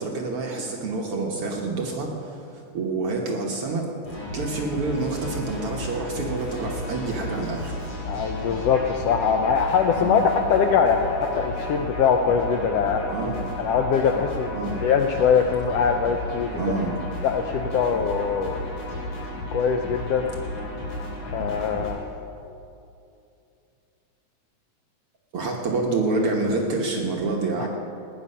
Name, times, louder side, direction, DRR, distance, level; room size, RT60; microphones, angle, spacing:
voice 1, 0.0-3.9 4.3-7.8 10.0-10.3 13.1-13.4 14.6-14.8 16.6-16.9 21.4-21.5 25.3-27.7, right 3 dB, 60° right, 0 dB, 1.9 m, -27 dB
sound 1, 4.0-21.9, left 1 dB, 50° left, 5.1 m, -33 dB
voice 2, 8.0-13.1 13.6-16.6 17.2-18.6 19.5-20.3 21.2-22.0 27.6-27.7, left 6 dB, 80° left, 5 dB, 1.5 m, -22 dB
17.5 x 10.0 x 5.5 m, 2.7 s
omnidirectional pair, 3.3 m